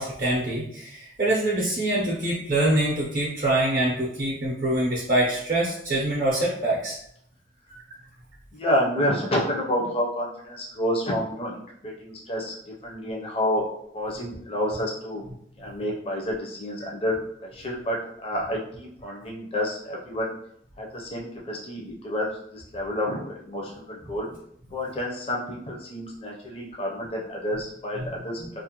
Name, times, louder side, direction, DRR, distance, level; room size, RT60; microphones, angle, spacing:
voice 1, 0.0-7.0 28.0-28.1 28.4-28.5, right 1 dB, 45° right, -5 dB, 0.5 m, -25 dB
voice 2, 8.5-12.5 12.8-13.6 13.9-15.2 15.6-17.1 17.4-18.0 18.2-20.3 20.8-24.3 24.7-28.4, equal, 30° left, -2 dB, 0.5 m, -29 dB
2.5 x 2.1 x 2.8 m, 0.70 s
head